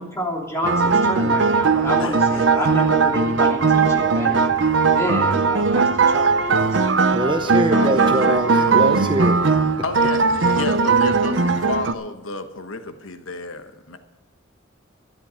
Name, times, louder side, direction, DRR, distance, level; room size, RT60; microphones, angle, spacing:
voice 1, 0.0-4.4 4.8-6.8, left 1 dB, 15° left, -2 dB, 3.0 m, -29 dB
sound 1, 0.6-11.9, right 4 dB, 65° right, 0.7 m, -18 dB
voice 2, 2.0-2.7 7.7-8.7 9.8-14.0, left 3 dB, 85° left, 8 dB, 1.1 m, -32 dB
voice 3, 7.1-9.4 10.5-10.6, right 1 dB, 25° right, 6 dB, 0.8 m, -23 dB
12.5 x 11.0 x 6.4 m, 1.1 s
head